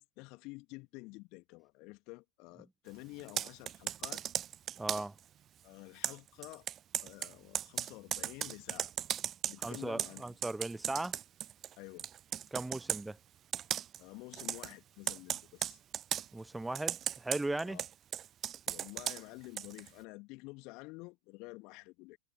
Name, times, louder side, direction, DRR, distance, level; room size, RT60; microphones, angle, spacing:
voice 1, 0.0-4.2 5.6-6.7 7.0-8.9 9.5-10.4 11.8-12.1 14.0-15.8 17.6-17.8 18.7-22.2, left 25 dB, 40° left, 2.4 m, -50 dB
Computer keyboard, 3.2-5.2 6.0-11.7 12.0-13.0 13.5-14.0 14.3-14.7 15.1-16.3 16.7-19.9, right 10 dB, 30° right, 0.5 m, -37 dB
voice 2, 4.8-5.1 9.6-11.2 12.5-13.2 16.3-17.8, right 2 dB, 5° right, 1.1 m, -37 dB
figure-of-eight pair, 90°, 0 cm